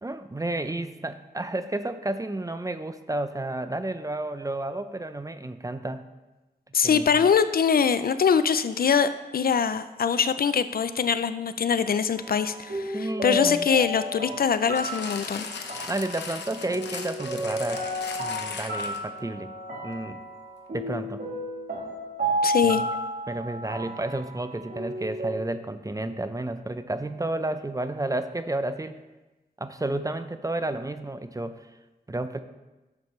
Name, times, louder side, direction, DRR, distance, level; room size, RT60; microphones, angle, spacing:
voice 1, 0.0-6.0 6.8-7.2 12.9-13.7 15.9-17.8 18.2-19.5 19.8-20.2 20.7-21.2 22.6-22.8 23.3-29.0 29.6-31.7 32.1-32.4, right 2 dB, 20° right, 10 dB, 0.6 m, -31 dB
voice 2, 6.7-15.5 22.4-22.8, left 6 dB, 60° left, 12 dB, 0.5 m, -23 dB
sound 1, 12.1-25.4, equal, 55° right, 2.0 m, -32 dB
sound 2, 14.8-19.2 19.9-20.0, left 5 dB, 90° left, 0.9 m, -38 dB
11.0 x 7.3 x 3.2 m, 1.1 s
cardioid pair, 50°, 17 cm